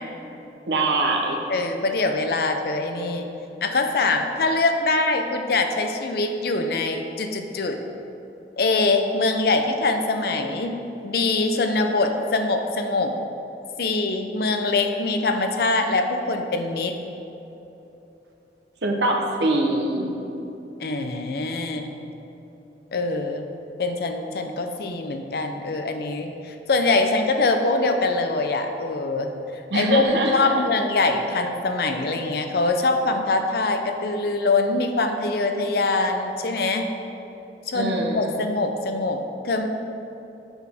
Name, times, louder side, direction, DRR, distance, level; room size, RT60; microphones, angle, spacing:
voice 1, 0.7-1.4 18.8-20.1 29.7-30.6 37.7-38.4, right 2 dB, 80° right, 1 dB, 0.9 m, -23 dB
voice 2, 1.5-3.3 3.6-7.8 8.6-10.7 11.0-13.1 13.8-16.9 20.8-21.9 22.9-23.4 23.8-29.3 29.7-30.0 30.3-36.8 37.7-39.7, left 3 dB, 60° left, 6 dB, 0.5 m, -23 dB
7.1 x 6.1 x 3.5 m, 3.0 s
head